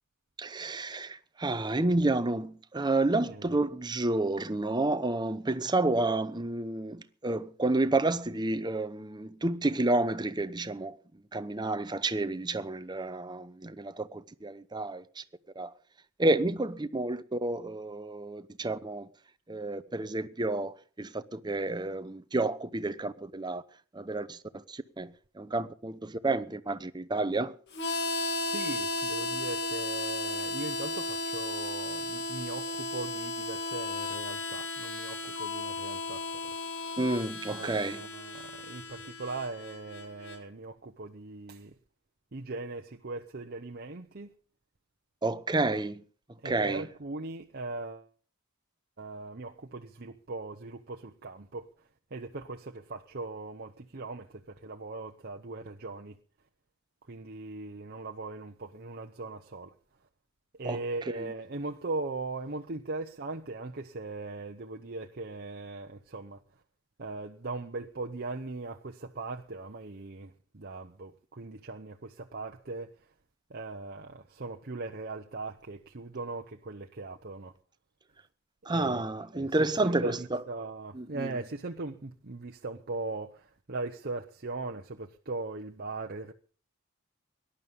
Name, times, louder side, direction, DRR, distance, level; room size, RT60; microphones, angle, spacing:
voice 1, 0.4-11.0 11.3-15.2 15.6-15.7 16.2-19.1 19.5-23.6 23.9-25.1 25.4-27.5 37.0-38.0 45.2-46.0 46.4-46.9 60.6-60.8 61.2-61.3 78.7-80.4 80.9-81.4, right 2 dB, 20° right, 0.8 m, -30 dB
voice 2, 3.1-3.5 28.5-36.6 36.8-37.0 37.5-41.8 42.3-44.3 46.4-48.1 49.0-51.7 52.1-56.2 57.1-59.7 60.6-66.4 67.0-72.9 73.5-77.5 78.7-79.0 79.3-86.3, right 3 dB, 50° right, 0.9 m, -39 dB
Harmonica, 27.7-40.4, left 2 dB, 55° left, 2.2 m, -35 dB
18.5 x 11.5 x 5.4 m
head